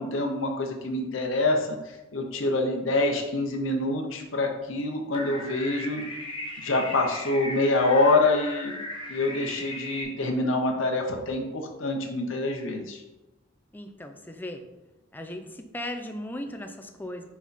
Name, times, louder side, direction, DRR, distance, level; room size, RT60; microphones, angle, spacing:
voice 1, 0.0-6.0 6.6-8.7 9.1-13.0, left 2 dB, 80° left, 2 dB, 0.8 m, -26 dB
sound 1, 5.1-10.0, left 1 dB, 25° left, 1.2 m, -37 dB
voice 2, 13.7-14.6 15.1-17.2, left 1 dB, 10° left, 5 dB, 0.5 m, -37 dB
6.0 x 4.5 x 4.1 m, 1.1 s
head